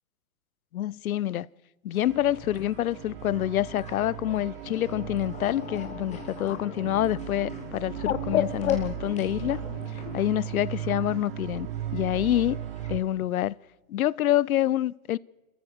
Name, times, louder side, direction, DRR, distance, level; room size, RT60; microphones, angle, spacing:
voice 1, 0.7-1.5 1.8-9.6 9.9-12.6 12.9-13.6 13.9-15.2, left 13 dB, 80° left, 0.7 m, -27 dB
sound 1, 1.9-12.9, left 3 dB, 15° left, 3.5 m, -51 dB
sound 2, 2.0-13.0, right 11 dB, 40° right, 1.2 m, -37 dB
Bird, 4.7-10.2, left 11 dB, 60° left, 1.0 m, -33 dB
29.5 x 14.0 x 6.5 m
hypercardioid pair, 145°, 42 cm